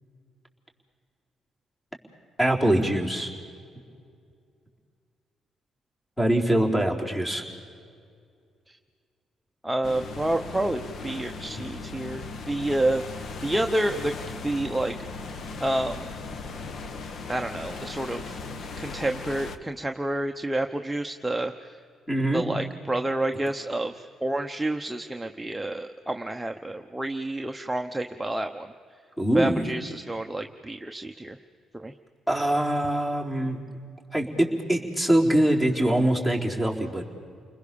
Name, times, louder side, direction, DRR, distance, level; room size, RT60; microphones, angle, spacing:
voice 1, 2.4-3.3 6.2-7.4 22.1-22.4 29.2-29.7 32.3-33.6 34.1-37.0, right 1 dB, 15° left, 1 dB, 4.1 m, -23 dB
voice 2, 6.5-6.9 8.7-8.8 9.6-13.0 13.4-14.1 14.4-14.9 15.6-16.1 17.3-18.4 18.8-21.8 22.3-28.7 29.3-31.4 31.7-31.9, right 1 dB, 10° right, 5 dB, 0.9 m, -29 dB
sound 1, 9.8-19.6, left 4 dB, 55° left, 1.3 m, -38 dB
29.5 x 21.0 x 7.0 m, 2.2 s
cardioid pair, 90°, 0 cm